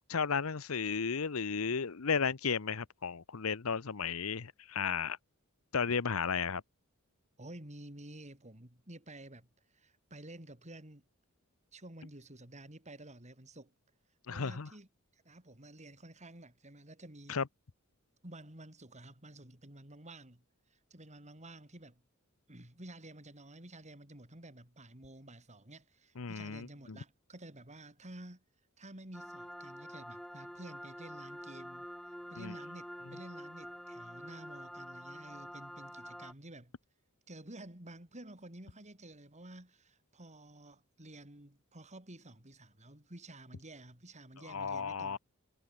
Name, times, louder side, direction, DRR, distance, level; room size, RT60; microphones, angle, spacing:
voice 1, 0.0-5.2 5.7-6.6 14.3-14.7 17.3-17.4 26.2-27.0 32.4-32.5 44.5-45.2, left 6 dB, 70° left, 0.8 m, -34 dB
voice 2, 7.4-9.5 9.7-11.0 11.7-13.7 14.3-14.9 15.1-17.4 18.2-20.4 20.7-22.0 22.5-28.4 28.8-31.9 32.3-36.8 37.3-45.2, right 1 dB, 30° right, 4.6 m, -51 dB
sound 1, 29.1-36.3, equal, ahead, 2.5 m, -47 dB
head